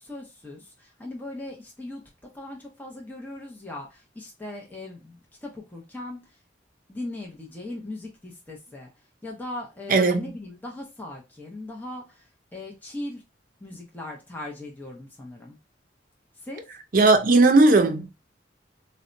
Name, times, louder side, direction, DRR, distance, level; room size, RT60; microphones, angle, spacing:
voice 1, 0.0-2.0 2.3-6.4 6.9-8.9 9.2-13.2 13.6-15.6 16.4-16.6, left 2 dB, 10° left, 0.6 m, -39 dB
voice 2, 9.9-10.3 16.9-18.1, right 3 dB, 50° right, 0.5 m, -17 dB
4.0 x 2.1 x 2.5 m
head